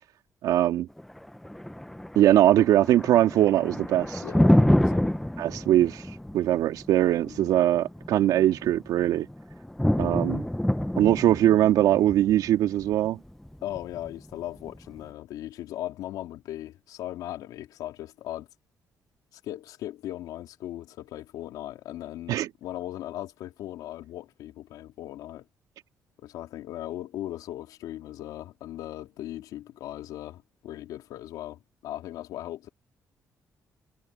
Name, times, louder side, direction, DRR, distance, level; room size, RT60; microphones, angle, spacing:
voice 1, 0.4-0.9 2.1-4.2 5.4-6.0 6.3-9.3 10.0-10.4 11.0-13.2 22.3-22.5, right 12 dB, 85° right, 3.1 m, -21 dB
Thunder, 1.0-15.0, left 1 dB, 5° left, 1.0 m, -28 dB
voice 2, 4.2-5.1 7.2-7.6 10.1-10.4 13.6-18.5 19.3-25.5 26.2-32.7, left 13 dB, 90° left, 4.0 m, -38 dB
cardioid pair, 90°, 6 cm